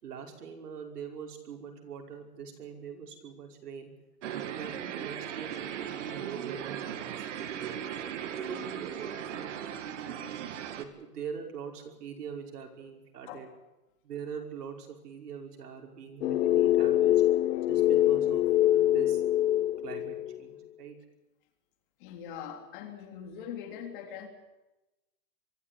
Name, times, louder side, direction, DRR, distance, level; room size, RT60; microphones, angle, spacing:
voice 1, 0.0-3.9 4.3-7.8 8.4-10.4 10.8-13.5 14.0-17.2 17.7-19.5 19.8-21.0, right 6 dB, 85° right, 2 dB, 5.5 m, -43 dB
sound 1, 4.2-10.8, right 9 dB, 50° right, 2.1 m, -38 dB
sound 2, 16.2-20.4, left 13 dB, 85° left, 0.9 m, -24 dB
voice 2, 22.0-24.3, left 8 dB, 35° left, 3 dB, 3.4 m, -42 dB
23.5 x 14.0 x 9.9 m, 1.0 s
hypercardioid pair, 170°, 45 cm